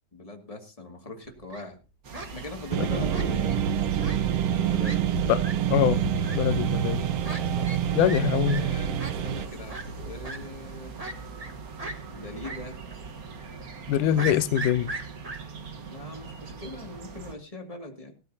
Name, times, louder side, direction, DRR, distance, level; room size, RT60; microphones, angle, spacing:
voice 1, 0.1-1.8 2.3-3.5 4.5-5.3 7.4-11.0 12.1-12.8 14.0-14.4 15.8-18.1, left 2 dB, 15° left, 1.8 m, -41 dB
Fowl, 1.2-1.7 2.1-2.3 3.1-3.6 4.0-4.2 4.5-4.6 4.8-5.0 5.4-5.5 6.2-6.4 7.2-7.4 7.7-8.2 8.5-8.6 9.0-9.1 9.7-9.8 10.2-10.4 11.0-11.5 11.8-12.0 12.4-12.6 12.9-13.0 14.2-15.4, right 2 dB, 30° right, 0.7 m, -36 dB
sound 1, 2.0-17.3, right 4 dB, 50° right, 1.1 m, -41 dB
sound 2, 2.7-9.5, right 9 dB, 65° right, 1.8 m, -26 dB
voice 2, 5.7-6.0 6.4-7.0 7.9-8.7 13.9-14.9, left 10 dB, 90° left, 2.3 m, -23 dB
18.5 x 13.0 x 2.8 m
omnidirectional pair, 3.5 m